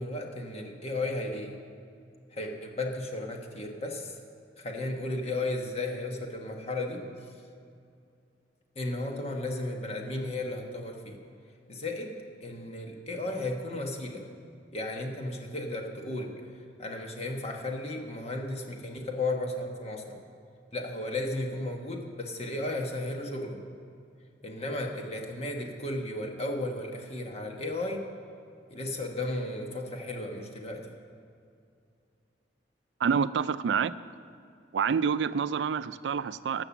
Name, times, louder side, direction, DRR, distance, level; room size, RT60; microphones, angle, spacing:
voice 1, 0.0-1.6 2.3-4.1 4.6-7.0 8.7-11.2 11.7-14.2 14.7-16.3 16.8-20.2 20.7-23.6 24.4-28.0 28.7-30.9, left 2 dB, 35° left, 2 dB, 1.2 m, -34 dB
voice 2, 33.0-33.9 34.7-36.6, right 6 dB, 75° right, 16 dB, 0.4 m, -27 dB
14.0 x 6.0 x 7.1 m, 2.4 s
head